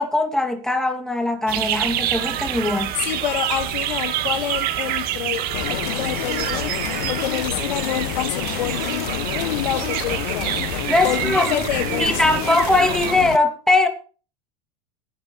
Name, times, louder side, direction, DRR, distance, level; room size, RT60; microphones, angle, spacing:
voice 1, 0.0-2.9 10.9-13.9, left 2 dB, ahead, 2.7 m, -21 dB
sound 1, 1.5-13.1, right 12 dB, 45° right, 2.1 m, -27 dB
voice 2, 3.0-6.7 7.1-10.6 11.0-12.4, left 12 dB, 85° left, 1.1 m, -28 dB
sound 2, 5.5-13.4, left 17 dB, 60° left, 1.1 m, -29 dB
17.5 x 9.8 x 4.5 m
supercardioid pair, 120°, 21 cm